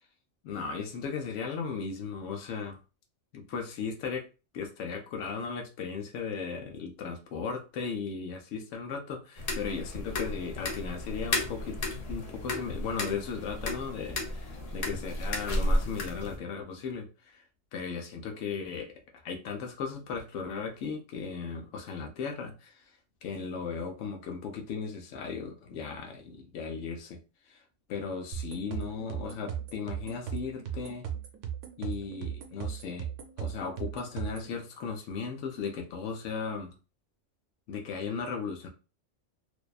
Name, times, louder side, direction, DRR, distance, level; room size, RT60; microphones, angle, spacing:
voice 1, 0.4-2.8 3.3-4.3 4.5-11.8 12.1-17.4 17.7-22.8 23.2-27.2 27.5-27.6 27.9-31.1 31.8-33.1 33.4-36.7 37.7-38.7, left 5 dB, 75° left, 3 dB, 0.9 m, -36 dB
sound 1, 9.4-16.4, left 1 dB, 50° left, 0.5 m, -33 dB
sound 2, 28.3-34.5, right 9 dB, 80° right, 0.9 m, -37 dB
2.6 x 2.2 x 2.3 m, 0.31 s
omnidirectional pair, 1.3 m